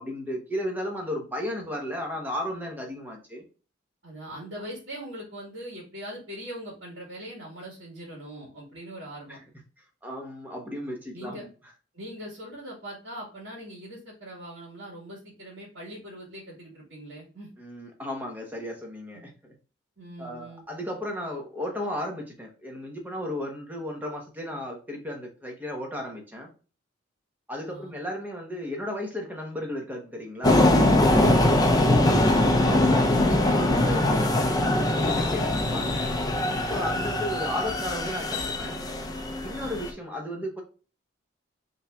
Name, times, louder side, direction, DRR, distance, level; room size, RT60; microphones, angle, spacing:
voice 1, 0.0-3.4 9.3-9.4 10.0-11.5 17.6-19.3 20.2-26.5 27.5-32.3 32.7-36.1 36.7-38.8 39.4-40.6, left 1 dB, 10° right, 1 dB, 1.0 m, -34 dB
voice 2, 4.0-9.4 11.1-11.4 11.9-17.5 19.1-19.2 20.0-20.6 27.7-27.9 40.4-40.5, right 1 dB, 65° right, -3 dB, 1.8 m, -41 dB
sound 1, 30.4-39.9, left 1 dB, 20° left, 0.5 m, -22 dB
5.4 x 3.3 x 2.4 m, 0.36 s
head